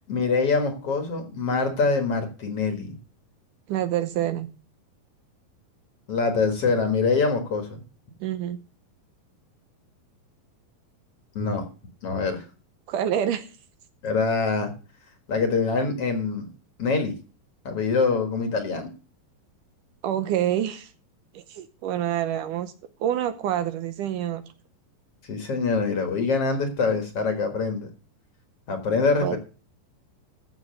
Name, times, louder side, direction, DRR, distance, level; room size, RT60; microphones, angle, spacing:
voice 1, 0.1-3.0 6.1-7.8 11.4-11.6 12.0-12.4 14.0-14.7 15.3-16.5 16.8-17.1 17.6-18.9 25.3-27.9 28.7-29.4, left 4 dB, 50° left, 6 dB, 2.3 m, -24 dB
voice 2, 3.7-4.5 8.2-8.6 12.9-13.5 20.0-20.9 21.3-22.7 23.0-24.4 29.2-29.4, right 11 dB, 75° right, 10 dB, 2.1 m, -27 dB
14.5 x 6.0 x 6.5 m, 0.35 s
omnidirectional pair, 4.1 m